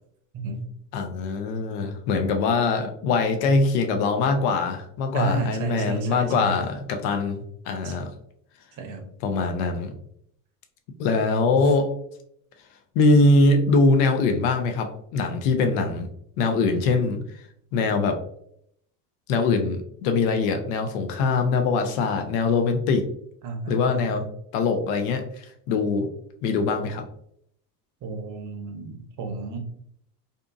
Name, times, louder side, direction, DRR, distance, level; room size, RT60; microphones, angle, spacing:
voice 1, 0.3-0.6 5.1-6.6 7.8-8.0 8.8-9.0 23.4-24.3 28.0-29.6, right 3 dB, 40° right, 4 dB, 0.7 m, -31 dB
voice 2, 0.9-8.1 9.2-9.9 11.0-11.9 13.0-16.1 16.4-17.2 17.7-18.2 19.3-23.1 23.7-24.2 24.5-26.1 26.4-27.0, left 3 dB, 70° left, 6 dB, 0.6 m, -22 dB
2.6 x 2.5 x 2.3 m, 0.69 s
supercardioid pair, 95°, 47 cm